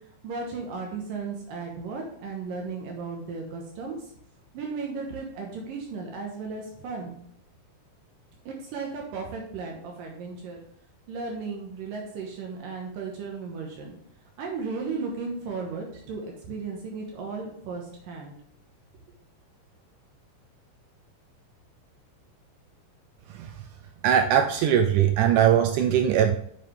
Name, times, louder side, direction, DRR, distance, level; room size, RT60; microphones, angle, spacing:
voice 1, 0.2-4.0 4.5-7.1 8.5-10.6 11.1-13.9 14.4-18.4, right 4 dB, 75° right, 0 dB, 2.7 m, -35 dB
voice 2, 24.0-26.4, right 9 dB, 90° right, 6 dB, 1.7 m, -20 dB
7.7 x 7.4 x 3.4 m, 0.71 s
omnidirectional pair, 4.2 m